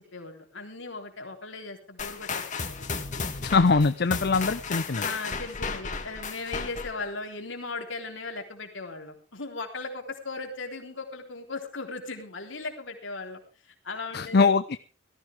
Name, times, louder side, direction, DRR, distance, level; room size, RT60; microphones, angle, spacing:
voice 1, 0.1-3.3 5.0-14.5, left 3 dB, 75° left, 3 dB, 3.6 m, -38 dB
sound 1, 2.0-7.1, left 4 dB, 40° left, 1.8 m, -34 dB
voice 2, 3.4-5.1 14.1-14.8, left 4 dB, 55° left, 12 dB, 0.6 m, -22 dB
18.0 x 14.0 x 3.5 m, 0.35 s
head